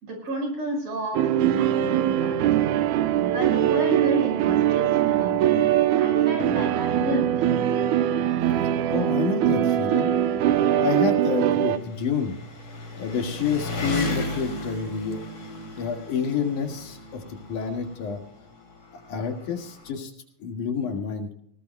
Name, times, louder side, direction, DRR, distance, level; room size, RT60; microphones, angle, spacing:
voice 1, 0.0-2.4 3.3-5.6 6.0-7.5, equal, 55° right, 3 dB, 6.5 m, -31 dB
sound 1, 1.1-11.8, right 11 dB, 80° right, 2.2 m, -22 dB
Engine, 5.3-5.4 5.8-5.9 6.9-7.0 7.2-19.9, left 1 dB, 40° left, 4.0 m, -37 dB
voice 2, 8.9-10.3 10.8-12.3 13.0-15.2 15.8-17.2 17.5-18.2 19.1-20.1 20.4-21.3, left 6 dB, 85° left, 4 dB, 3.4 m, -28 dB
20.0 x 19.0 x 2.2 m, 0.64 s
omnidirectional pair, 3.5 m